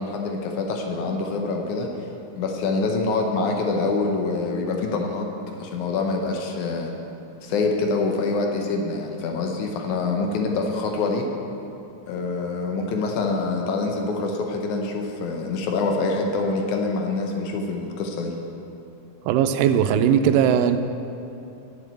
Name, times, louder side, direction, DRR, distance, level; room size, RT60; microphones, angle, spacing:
voice 1, 0.0-1.9 2.4-5.3 5.6-6.9 7.4-11.3 12.1-18.4, left 3 dB, 75° left, 2 dB, 2.1 m, -25 dB
voice 2, 19.3-20.8, right 9 dB, 90° right, 9 dB, 2.2 m, -19 dB
7.7 x 7.1 x 8.1 m, 2.7 s
omnidirectional pair, 3.8 m